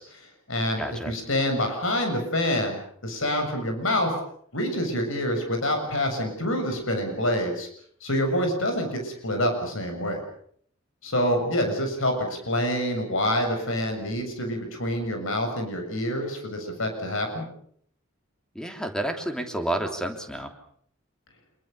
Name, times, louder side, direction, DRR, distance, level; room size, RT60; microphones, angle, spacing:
voice 1, 0.0-4.1 4.5-7.7 8.0-10.2 11.0-17.5, left 1 dB, 75° left, 4 dB, 7.1 m, -27 dB
voice 2, 0.8-1.1 18.5-20.5, right 1 dB, 5° left, 4 dB, 3.2 m, -30 dB
27.0 x 23.0 x 6.8 m, 0.63 s
head